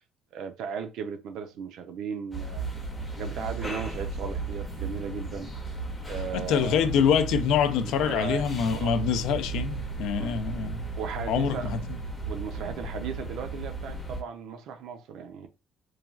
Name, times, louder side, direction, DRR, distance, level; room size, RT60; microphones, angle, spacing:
voice 1, 0.3-2.7 3.1-5.5 6.0-6.9 8.0-8.5 8.7-8.9 10.2-10.4 11.0-11.8 12.3-15.5, right 6 dB, 70° right, 0.5 m, -36 dB
sound 1, 2.3-14.2, right 3 dB, 10° left, 0.6 m, -35 dB
voice 2, 6.3-10.9 11.3-11.8, left 7 dB, 70° left, 0.4 m, -25 dB
3.1 x 2.3 x 2.3 m
cardioid pair, 140°, 0 cm